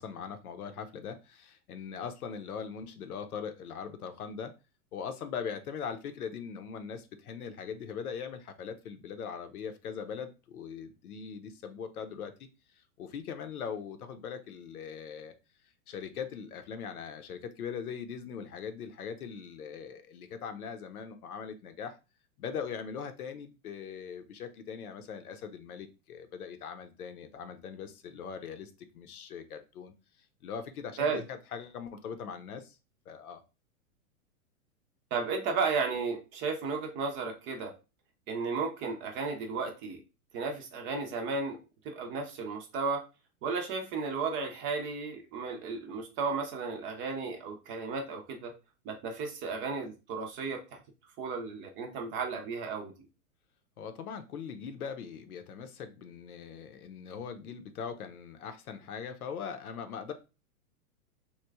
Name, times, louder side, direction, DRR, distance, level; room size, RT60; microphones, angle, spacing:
voice 1, 0.0-4.5 4.9-12.3 12.8-15.3 15.9-22.0 22.4-29.9 30.4-32.8 33.1-33.4 53.8-60.1, left 6 dB, 75° left, 8 dB, 0.7 m, -41 dB
voice 2, 35.1-37.7 38.3-40.0 40.3-41.6 41.8-43.0 43.4-48.5 48.8-50.8 51.2-52.9, right 4 dB, 25° right, 4 dB, 0.6 m, -34 dB
3.0 x 2.3 x 3.4 m, 0.29 s
hypercardioid pair, 115°, 44 cm